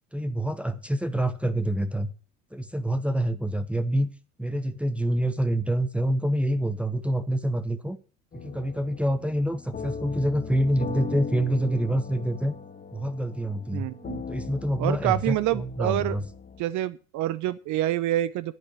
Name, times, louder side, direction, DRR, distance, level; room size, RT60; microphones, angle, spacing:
voice 1, 0.1-2.1 2.5-4.1 4.4-8.0 8.3-12.5 12.9-13.9 14.3-16.2, right 1 dB, 5° right, 9 dB, 1.1 m, -26 dB
sound 1, 8.3-16.6, left 5 dB, 25° left, 1.9 m, -39 dB
voice 2, 13.7-14.2 14.8-16.2 16.6-18.5, right 13 dB, 50° right, 16 dB, 0.8 m, -27 dB
11.0 x 8.6 x 6.5 m, 0.36 s
hypercardioid pair, 80°, 39 cm